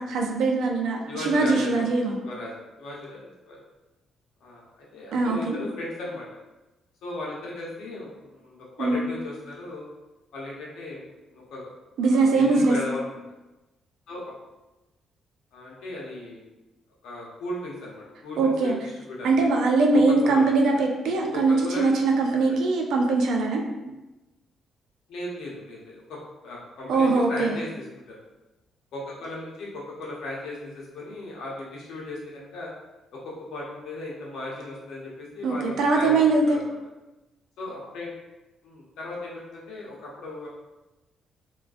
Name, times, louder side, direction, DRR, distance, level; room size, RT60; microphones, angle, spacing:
voice 1, 0.0-2.2 5.1-5.6 8.8-9.0 12.0-12.8 18.4-18.8 19.2-23.6 26.9-27.6 35.4-36.6, right 3 dB, 80° right, 1 dB, 0.4 m, -22 dB
voice 2, 1.1-1.9 2.2-2.5 2.8-3.6 4.4-6.3 7.0-9.9 10.3-11.0 11.3-11.7 12.0-13.1 14.1-14.3 15.5-16.4 17.0-19.4 20.1-20.8 21.3-21.9 22.2-22.5 25.1-26.2 26.4-27.8 28.9-32.7 33.1-33.2 33.5-36.2 36.4-36.6 37.6-38.1 38.6-40.5, left 2 dB, 80° left, -4 dB, 0.7 m, -36 dB
2.3 x 2.2 x 2.4 m, 1.0 s
cardioid pair, 90°, 0 cm